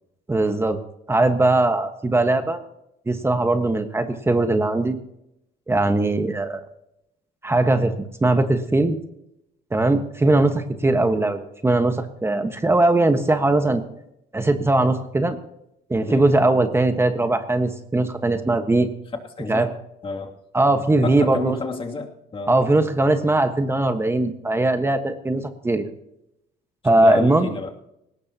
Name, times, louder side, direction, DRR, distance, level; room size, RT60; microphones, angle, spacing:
voice 1, 0.3-0.8 1.1-2.6 3.1-5.0 5.7-6.6 7.4-7.9 8.2-9.0 9.7-13.8 14.3-15.4 15.9-18.9 19.5-19.7 20.5-21.6 22.5-25.9 26.8-27.5, right 2 dB, 15° right, 7 dB, 1.3 m, -20 dB
voice 2, 19.4-19.7 20.0-20.3 21.0-22.5 26.9-27.7, left 4 dB, 30° left, 2 dB, 2.6 m, -30 dB
20.0 x 18.0 x 2.9 m, 0.81 s
cardioid pair, 110°, 17 cm